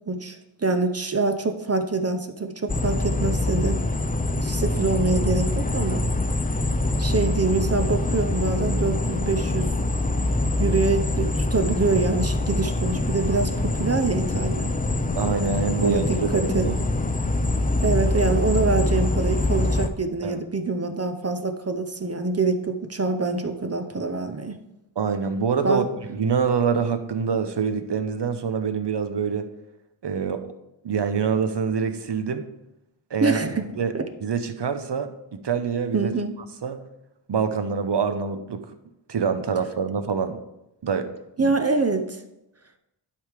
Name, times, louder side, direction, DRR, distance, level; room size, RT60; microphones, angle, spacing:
voice 1, 0.1-3.8 4.4-6.1 7.0-9.7 10.6-14.7 15.8-16.7 17.8-24.6 25.6-25.9 33.2-33.7 33.9-34.1 35.9-36.3 41.4-42.2, right 3 dB, 30° right, 7 dB, 0.7 m, -25 dB
sound 1, 2.7-19.9, left 2 dB, 20° left, 0.4 m, -24 dB
voice 2, 15.2-16.8 20.2-20.4 25.0-25.8 26.1-29.5 30.0-30.4 30.8-32.5 33.1-33.4 33.7-34.0 34.2-36.1 36.6-36.8 37.3-38.7 39.1-40.4 40.8-41.1 41.4-41.5, right 6 dB, 60° right, 9 dB, 0.8 m, -25 dB
11.5 x 4.9 x 3.5 m, 0.88 s
wide cardioid pair, 80°, 48 cm